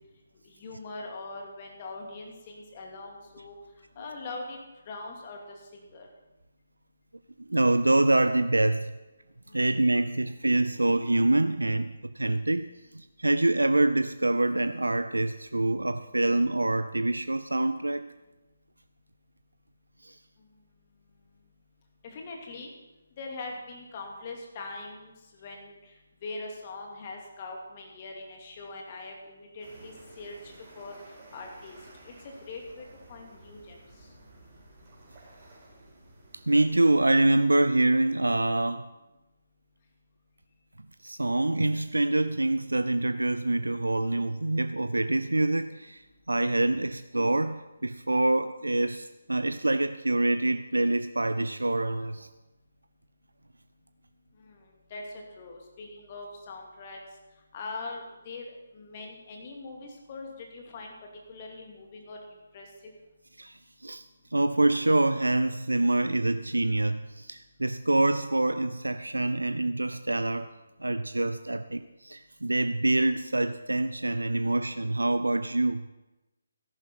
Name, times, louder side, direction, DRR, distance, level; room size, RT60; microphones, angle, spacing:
voice 1, 0.6-3.5 4.0-4.6 4.9-6.1 9.5-9.6 22.0-22.7 23.2-25.1 25.4-25.9 26.2-30.9 31.3-31.8 32.0-32.8 33.1-33.8 54.4-54.6 54.9-55.1 55.4-57.0 57.5-58.4 58.7-60.9 61.3-62.2 62.5-62.7, left 3 dB, 30° left, 1 dB, 2.3 m, -41 dB
voice 2, 7.4-8.9 9.5-18.1 20.0-20.2 36.5-38.9 41.0-52.3 63.4-64.1 64.3-70.5 70.8-75.9, right 2 dB, 80° right, 11 dB, 0.5 m, -26 dB
sound 1, 29.6-37.2, right 2 dB, 25° right, 4.5 m, -53 dB
14.0 x 11.0 x 4.2 m, 1.0 s
figure-of-eight pair, 145°, 0 cm